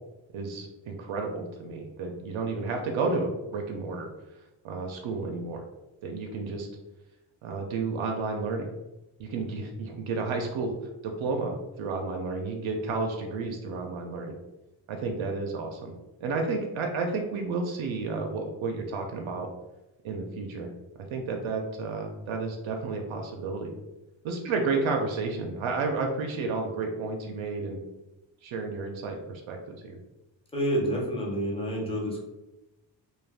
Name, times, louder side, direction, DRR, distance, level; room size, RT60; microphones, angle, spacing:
voice 1, 0.3-4.1 4.6-5.6 6.0-6.7 7.4-8.7 9.2-10.7 11.0-14.4 14.9-15.9 16.2-19.5 20.0-20.7 21.1-23.7 24.2-27.8 28.4-30.0, right 3 dB, 85° right, 3 dB, 0.5 m, -31 dB
voice 2, 30.5-32.2, equal, 15° left, -3 dB, 0.5 m, -28 dB
2.3 x 2.3 x 3.3 m, 0.98 s
wide cardioid pair, 175°, 46 cm